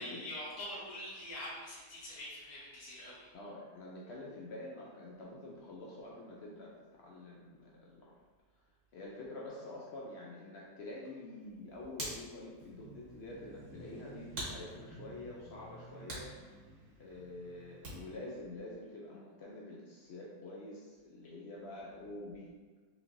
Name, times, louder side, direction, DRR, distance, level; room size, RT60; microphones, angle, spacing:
voice 1, 0.0-3.3, left 1 dB, 35° left, -9 dB, 0.7 m, -44 dB
voice 2, 3.3-8.1 8.9-16.3 17.0-22.5, left 2 dB, 80° left, -4 dB, 0.6 m, -47 dB
Hands, 11.4-18.2, right 1 dB, 90° right, 1.8 m, -48 dB
sound 1, 12.6-18.4, right 2 dB, 65° right, 0.9 m, -54 dB
4.3 x 2.8 x 2.6 m, 1.4 s
omnidirectional pair, 1.7 m